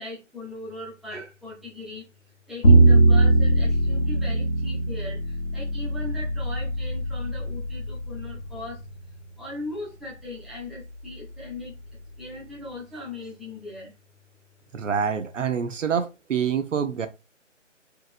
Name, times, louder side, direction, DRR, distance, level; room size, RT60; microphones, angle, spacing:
voice 1, 0.0-2.1 2.5-5.2 5.5-8.8 9.4-11.7 12.2-13.9, left 2 dB, ahead, 0.4 m, -38 dB
Bowed string instrument, 2.6-8.8, right 2 dB, 45° left, 0.7 m, -21 dB
voice 2, 14.7-17.1, right 7 dB, 75° right, 0.6 m, -26 dB
2.9 x 2.4 x 2.5 m
figure-of-eight pair, 170°, 38 cm